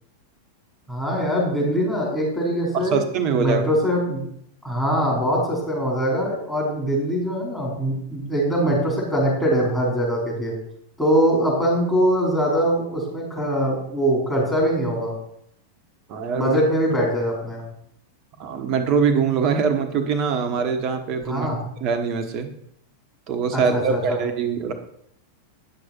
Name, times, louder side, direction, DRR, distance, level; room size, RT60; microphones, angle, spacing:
voice 1, 0.9-3.0 3.4-4.2 4.6-10.5 11.0-15.1 16.3-17.6 21.3-21.6 23.5-24.2, equal, 5° left, -3 dB, 4.5 m, -22 dB
voice 2, 2.7-3.6 16.1-16.6 18.4-21.5 21.8-22.5 23.3-24.7, right 6 dB, 40° right, 7 dB, 1.2 m, -23 dB
9.9 x 6.7 x 4.4 m, 0.70 s
figure-of-eight pair, 90°, 0 cm